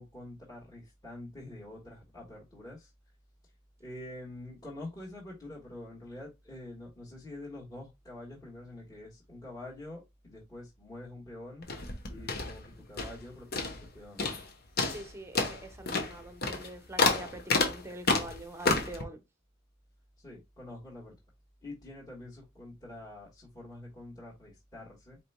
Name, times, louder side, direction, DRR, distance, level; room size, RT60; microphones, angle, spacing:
voice 1, 0.0-2.9 3.8-11.7 12.1-13.6 13.9-14.3 20.2-21.1 21.6-25.2, left 1 dB, 20° left, 1.5 m, -46 dB
sound 1, 11.6-13.2 13.5-13.9 14.2-14.5 14.8-19.0, left 3 dB, 50° left, 1.0 m, -30 dB
voice 2, 14.9-19.2, right 1 dB, 15° right, 0.7 m, -45 dB
5.0 x 4.3 x 2.2 m
head